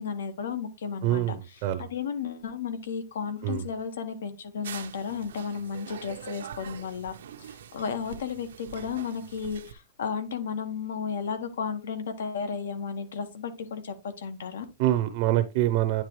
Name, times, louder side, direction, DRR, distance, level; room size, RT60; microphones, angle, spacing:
voice 1, 0.0-14.6, left 6 dB, 90° left, 1.5 m, -34 dB
voice 2, 1.0-1.9 3.4-3.6 14.8-16.0, right 13 dB, 40° right, 0.6 m, -25 dB
sound 1, 4.6-9.7, right 8 dB, 85° right, 0.8 m, -44 dB
9.5 x 3.7 x 3.1 m
supercardioid pair, 165°, 0 cm